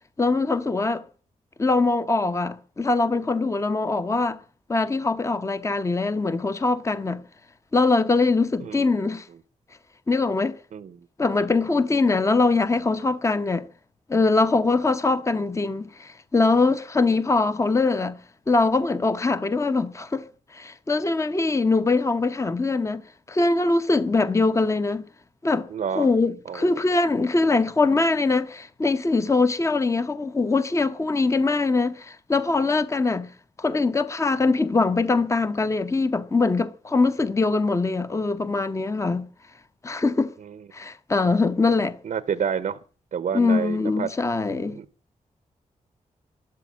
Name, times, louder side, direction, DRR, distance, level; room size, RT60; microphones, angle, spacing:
voice 1, 0.2-1.0 1.6-4.4 4.7-7.2 7.7-9.3 10.1-10.6 11.2-13.6 14.1-18.2 18.5-20.3 20.5-23.0 23.3-25.0 25.4-25.7 25.9-33.3 33.6-39.3 39.8-40.3 40.7-42.0 43.3-44.8, left 3 dB, 20° left, 0.8 m, -22 dB
voice 2, 8.6-8.9 10.7-11.0 25.7-26.1 26.5-26.8 40.4-40.6 42.0-42.8 43.1-44.1 44.5-44.8, right 7 dB, 70° right, 0.7 m, -29 dB
12.5 x 12.5 x 7.4 m
wide cardioid pair, 120°, 14 cm